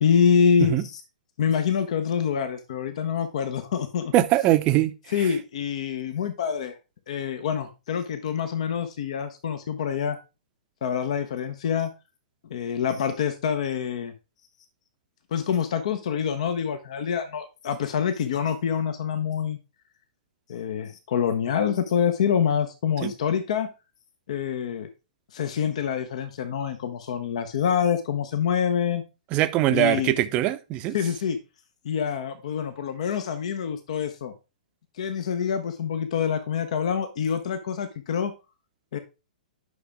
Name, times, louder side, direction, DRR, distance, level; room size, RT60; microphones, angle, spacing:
voice 1, 0.0-1.0 1.4-4.1 5.1-6.8 7.1-10.2 10.8-11.9 12.5-14.1 15.3-19.6 20.5-23.7 24.3-24.9 25.3-29.0 29.7-30.1 30.9-31.4 31.8-34.3 35.0-38.3 38.9-39.0, left 7 dB, 50° left, 0.9 m, -26 dB
voice 2, 4.1-4.9 23.0-23.1 29.3-31.0, right 14 dB, 30° right, 0.7 m, -22 dB
9.6 x 6.0 x 3.5 m
figure-of-eight pair, 110°, 4 cm